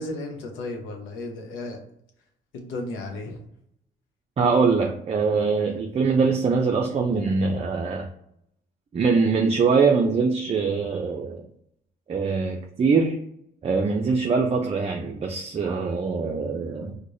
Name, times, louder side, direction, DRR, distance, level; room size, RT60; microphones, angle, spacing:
voice 1, 0.0-1.8 2.5-3.5, left 2 dB, 90° left, 2 dB, 0.8 m, -34 dB
voice 2, 4.4-8.1 8.9-11.5 12.1-13.2 13.6-17.0, right 4 dB, 30° right, 2 dB, 0.4 m, -23 dB
4.6 x 2.1 x 2.6 m, 0.74 s
cardioid pair, 90°, 20 cm